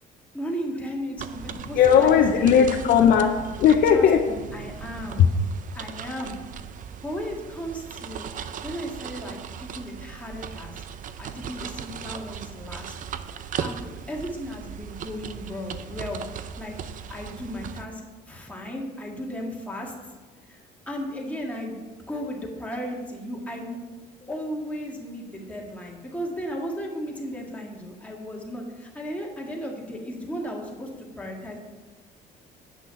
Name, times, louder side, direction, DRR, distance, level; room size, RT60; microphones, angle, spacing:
voice 1, 0.3-2.5 3.9-5.2 5.7-6.4 7.0-8.3 8.6-10.8 11.2-12.9 13.6-16.7 17.1-18.0 18.3-19.9 20.5-20.6 20.9-21.8 22.1-23.8 24.3-31.6, equal, 10° left, -2 dB, 1.9 m, -35 dB
sound 1, 1.2-17.9, right 8 dB, 50° right, 0.5 m, -38 dB
voice 2, 1.7-4.2 5.1-5.3, left 8 dB, 65° left, 3 dB, 0.7 m, -17 dB
8.6 x 6.2 x 5.6 m, 1.3 s
cardioid pair, 110°, 17 cm